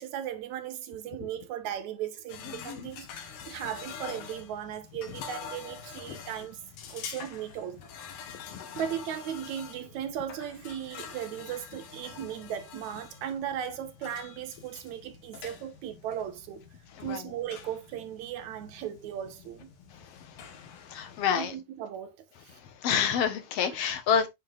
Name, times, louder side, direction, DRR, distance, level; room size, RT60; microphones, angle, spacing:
voice 1, 0.0-6.6 6.9-7.8 8.1-8.3 8.8-16.6 17.0-19.7 21.3-22.1 22.5-22.6, right 9 dB, 75° right, 2.3 m, -37 dB
sound 1, 2.3-21.3, left 6 dB, 80° left, 2.9 m, -46 dB
voice 2, 8.5-8.8 17.1-17.2 20.9-21.5 22.8-24.3, left 7 dB, 60° left, 2.1 m, -28 dB
8.8 x 5.6 x 2.5 m
omnidirectional pair, 3.5 m